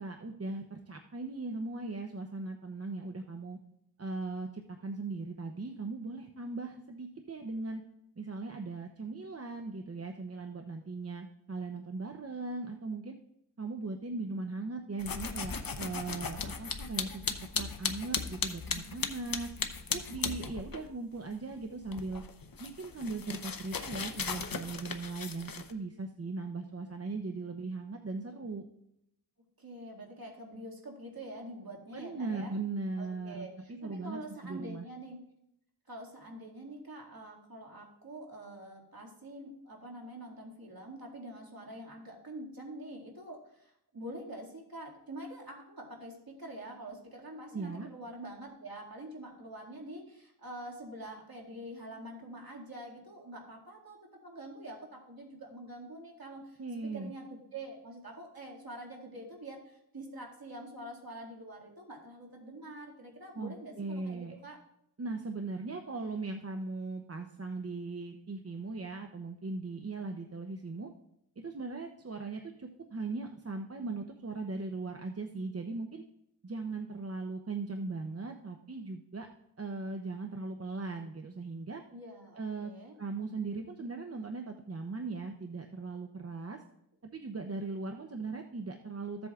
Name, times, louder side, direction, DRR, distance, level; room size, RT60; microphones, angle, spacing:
voice 1, 0.0-3.6 4.0-7.8 8.2-13.2 13.6-19.5 19.9-22.2 22.6-28.6 31.9-34.8 47.5-47.9 56.6-57.1 63.3-64.3 65.0-70.9 71.4-76.0 76.4-79.3 79.6-81.8 82.4-82.7 83.0-86.6 87.1-89.3, right 3 dB, 35° right, 4 dB, 0.7 m, -39 dB
sound 1, 15.0-20.9 21.2-25.7, left 5 dB, 55° left, 0.8 m, -37 dB
voice 2, 29.6-32.6 33.0-35.2 35.9-56.6 56.9-64.6 81.9-83.0, right 1 dB, 60° right, -2 dB, 2.2 m, -46 dB
14.5 x 7.6 x 2.4 m, 0.78 s
wide cardioid pair, 45°, 41 cm